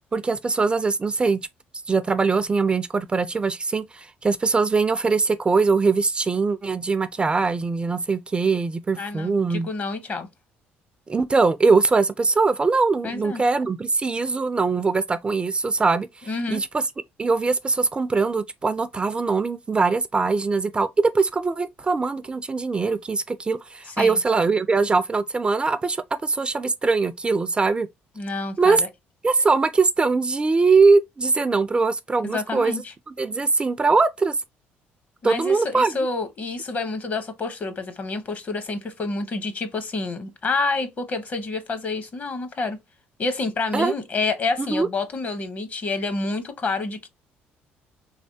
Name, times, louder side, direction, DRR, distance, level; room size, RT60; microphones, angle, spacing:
voice 1, 0.1-1.4 1.9-9.7 11.1-16.8 17.2-27.9 28.6-28.8 29.2-32.8 33.2-34.4 35.2-35.9 43.7-43.9 44.6-44.9, right 4 dB, 25° right, 0.3 m, -22 dB
voice 2, 9.0-10.3 13.0-13.4 16.3-16.6 23.9-24.2 28.2-28.9 32.2-32.9 35.2-42.8 43.2-47.1, left 3 dB, 40° left, 0.8 m, -28 dB
3.2 x 3.2 x 2.7 m
cardioid pair, 90°, 4 cm